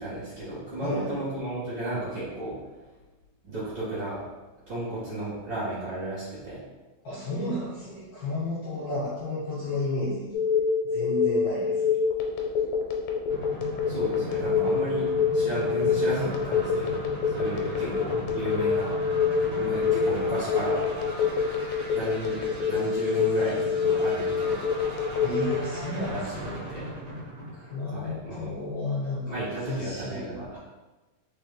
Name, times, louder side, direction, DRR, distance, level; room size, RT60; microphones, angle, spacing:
voice 1, 0.0-2.5 3.4-4.2 4.7-6.6 13.9-18.9 19.4-20.8 21.9-24.6 26.1-26.3 26.7-26.9 27.9-28.5 29.3-30.6, right 1 dB, 70° right, -11 dB, 1.0 m, -34 dB
voice 2, 0.8-1.2 7.0-10.3 10.8-11.9 25.2-26.6 27.5-30.6, left 1 dB, 55° left, -10 dB, 1.8 m, -32 dB
Telephone, 10.3-25.6, left 6 dB, 80° left, 2.2 m, -25 dB
sound 1, 13.3-28.2, equal, 50° right, 1.3 m, -37 dB
4.8 x 3.9 x 2.2 m, 1.1 s
omnidirectional pair, 4.0 m